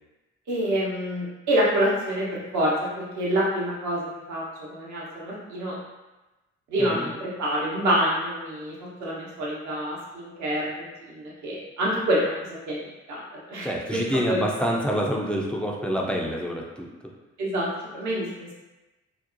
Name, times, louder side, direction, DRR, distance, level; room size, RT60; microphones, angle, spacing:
voice 1, 0.5-4.4 4.7-5.7 6.7-12.3 12.7-13.2 13.5-14.0 14.3-14.4 17.4-17.7 17.9-18.5, right 1 dB, 55° right, -5 dB, 0.9 m, -27 dB
voice 2, 6.8-7.1 13.6-16.9, equal, 5° left, -1 dB, 0.4 m, -27 dB
2.7 x 2.0 x 2.6 m, 1.1 s
figure-of-eight pair, 40°, 34 cm